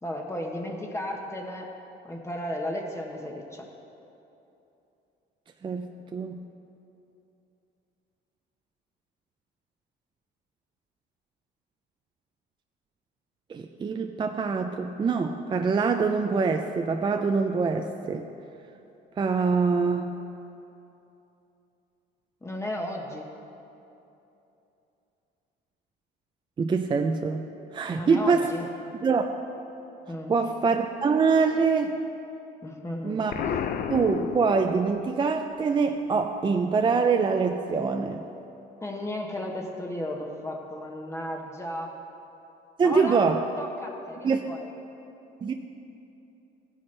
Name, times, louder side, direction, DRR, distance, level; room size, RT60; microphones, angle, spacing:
voice 1, 0.0-1.7 2.0-3.7 22.4-23.3 27.9-28.7 30.1-30.3 32.6-33.2 38.8-42.0 42.8-43.2 43.6-44.7, left 1 dB, 15° left, 0 dB, 1.0 m, -34 dB
voice 2, 5.6-6.4 13.5-18.3 19.2-20.1 26.6-27.4 27.7-28.5 29.0-29.3 30.3-32.0 33.0-33.6 33.9-38.2 42.8-43.4 44.2-44.5 45.4-45.5, right 5 dB, 25° right, 5 dB, 0.4 m, -24 dB
Explosion, 33.3-35.1, left 8 dB, 50° left, 0.6 m, -31 dB
15.0 x 9.9 x 3.3 m, 2.8 s
cardioid pair, 105°, 19 cm